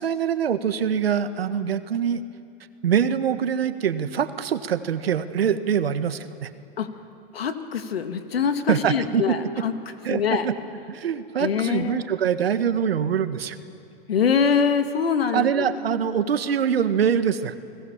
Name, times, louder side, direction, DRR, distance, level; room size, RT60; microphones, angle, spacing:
voice 1, 0.0-2.2 2.8-6.5 8.7-9.2 10.1-10.5 10.9-13.6 15.3-17.6, right 8 dB, 80° right, 10 dB, 1.7 m, -24 dB
voice 2, 7.3-9.7 10.1-10.5 11.4-12.1 14.1-15.8, left 6 dB, 80° left, 7 dB, 2.1 m, -24 dB
29.5 x 20.5 x 7.3 m, 2.7 s
hypercardioid pair, 115°, 30 cm